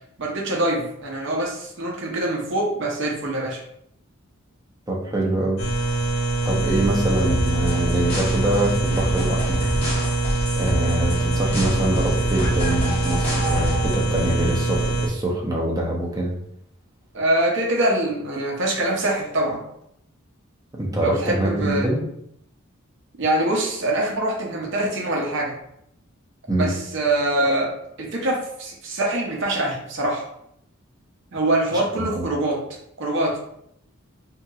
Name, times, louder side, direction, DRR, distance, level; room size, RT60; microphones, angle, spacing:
voice 1, 0.2-3.6 17.1-19.6 21.0-21.9 23.2-25.5 26.5-27.7 28.0-30.2 31.3-32.6 33.0-33.4, right 1 dB, 60° right, -1 dB, 0.7 m, -24 dB
voice 2, 4.9-5.6 6.4-9.6 10.6-16.3 20.7-22.0 26.5-26.7 32.1-32.2, right 1 dB, 15° right, -2 dB, 0.6 m, -24 dB
sound 1, 5.6-15.1, right 2 dB, 70° left, 0.8 m, -24 dB
sound 2, 7.2-14.0, equal, 30° left, 0.8 m, -28 dB
2.9 x 2.8 x 2.3 m, 0.74 s
head